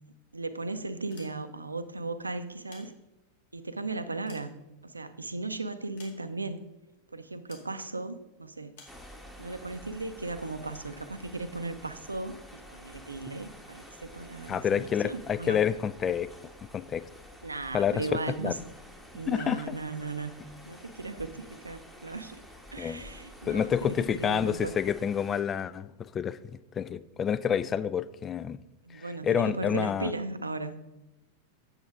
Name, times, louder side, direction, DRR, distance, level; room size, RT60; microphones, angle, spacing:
voice 1, 0.3-2.9 3.5-4.5 4.8-6.6 7.1-8.7 9.4-15.6 17.4-18.6 19.1-20.3 20.7-22.4 22.7-24.7 28.8-30.8, right 3 dB, 80° right, 11 dB, 0.5 m, -36 dB
sound 1, 1.0-1.8 2.4-3.4 3.9-5.2 6.0-6.6 7.5-7.8 8.7-9.0, left 4 dB, 55° left, 2.2 m, -55 dB
sound 2, 8.9-25.4, equal, 5° left, 1.1 m, -50 dB
voice 2, 14.5-16.3 16.7-17.1 17.7-18.5 19.3-19.8 22.8-23.0 23.4-28.6 28.9-30.1, left 8 dB, 25° left, 15 dB, 0.3 m, -29 dB
8.1 x 7.8 x 3.6 m, 0.94 s
figure-of-eight pair, 90°, 0 cm